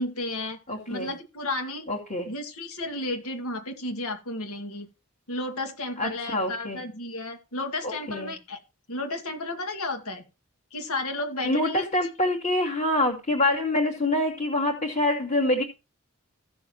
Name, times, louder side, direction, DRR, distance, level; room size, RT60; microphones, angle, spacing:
voice 1, 0.0-0.6 0.9-1.9 2.3-4.9 5.3-8.6 8.9-10.2 10.7-11.9, left 2 dB, 85° left, 5 dB, 2.2 m, -32 dB
voice 2, 0.7-1.1 1.9-2.3 6.0-6.8 7.8-8.3 11.4-15.6, left 1 dB, 35° left, -3 dB, 2.4 m, -26 dB
15.5 x 6.9 x 3.0 m, 0.28 s
head